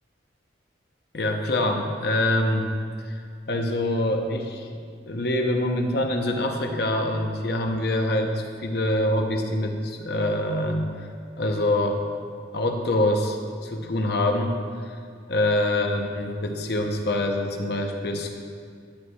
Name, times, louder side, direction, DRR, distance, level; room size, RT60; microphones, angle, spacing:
voice 1, 1.1-2.7 3.0-3.2 3.5-4.7 5.1-11.1 11.4-12.0 12.5-14.6 14.8-14.9 15.3-18.3, left 1 dB, 55° left, 3 dB, 0.7 m, -25 dB
11.5 x 9.3 x 2.3 m, 2.2 s
head